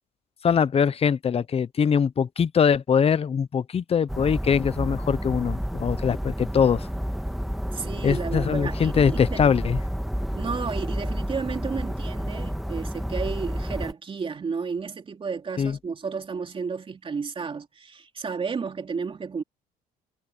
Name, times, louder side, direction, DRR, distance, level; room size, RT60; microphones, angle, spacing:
voice 1, 0.4-6.9 8.0-9.8 15.6-15.8, left 7 dB, 35° left, 1.0 m, -22 dB
sound 1, 4.1-13.9, equal, ahead, 1.7 m, -30 dB
voice 2, 7.7-9.4 10.3-19.4, right 5 dB, 30° right, 3.1 m, -32 dB
cardioid pair, 110°, 17 cm